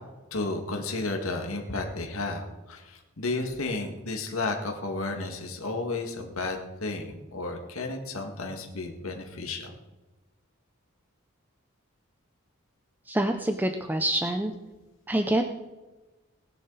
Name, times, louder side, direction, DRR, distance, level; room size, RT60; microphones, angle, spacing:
voice 1, 0.3-9.8, left 3 dB, 75° left, 2 dB, 2.2 m, -32 dB
voice 2, 13.1-14.5 15.1-15.4, right 1 dB, 10° right, 5 dB, 0.6 m, -26 dB
20.0 x 10.5 x 4.1 m, 1.1 s
head